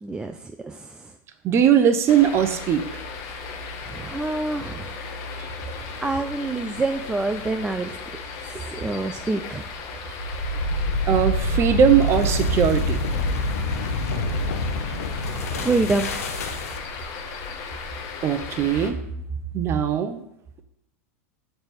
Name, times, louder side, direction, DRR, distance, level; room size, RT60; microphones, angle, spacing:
voice 1, 0.0-1.1 3.9-4.9 6.0-8.0 8.4-9.6 15.3-16.1, right 3 dB, 10° right, 5 dB, 0.3 m, -27 dB
voice 2, 1.4-2.8 5.4-5.5 11.1-13.0 18.2-19.0 19.5-20.2, right 8 dB, 35° right, 7 dB, 0.7 m, -20 dB
sound 1, 2.1-18.9, left 5 dB, 45° left, 1.0 m, -36 dB
sound 2, 10.1-17.0, left 1 dB, 90° left, 0.8 m, -26 dB
6.6 x 3.3 x 4.5 m, 0.79 s
supercardioid pair, 120°, 8 cm